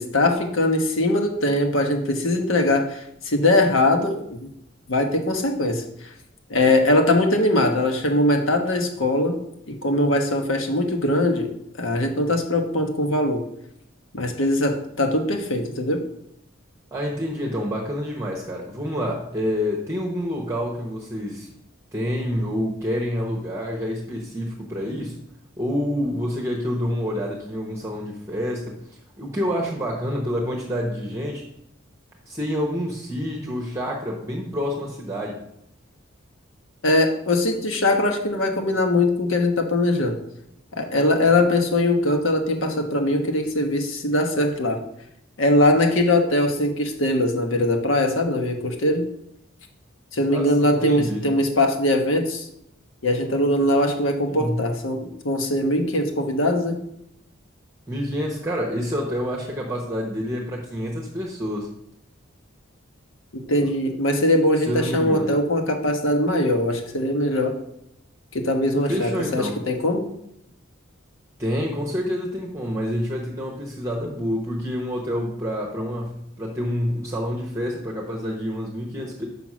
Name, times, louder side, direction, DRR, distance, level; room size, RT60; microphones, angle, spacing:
voice 1, 0.0-4.4 4.9-5.8 6.5-9.4 9.7-13.4 14.1-16.0 36.8-40.2 40.7-44.8 45.4-49.0 50.1-52.5 53.0-56.8 63.5-67.6 68.3-70.1, left 1 dB, 80° left, 4 dB, 1.3 m, -21 dB
voice 2, 16.9-21.5 21.9-25.2 25.6-31.5 32.3-35.4 50.3-51.2 54.3-54.6 57.9-61.7 63.6-63.7 64.6-65.3 68.9-69.6 71.4-79.3, equal, 15° right, -2 dB, 1.0 m, -28 dB
6.0 x 5.7 x 6.1 m, 0.76 s
head